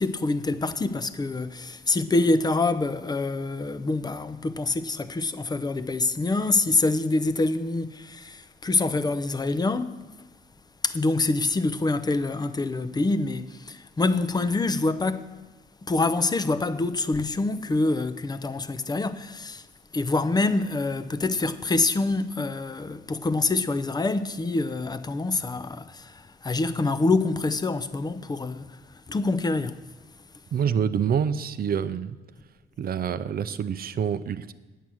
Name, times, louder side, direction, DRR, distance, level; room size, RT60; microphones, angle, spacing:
voice 1, 0.0-9.9 10.8-15.3 15.9-19.7 19.9-29.8, left 3 dB, 20° left, 0.6 m, -26 dB
voice 2, 30.5-32.2 32.8-34.5, right 7 dB, 50° right, 0.6 m, -27 dB
9.0 x 8.3 x 6.3 m
cardioid pair, 90°, 20 cm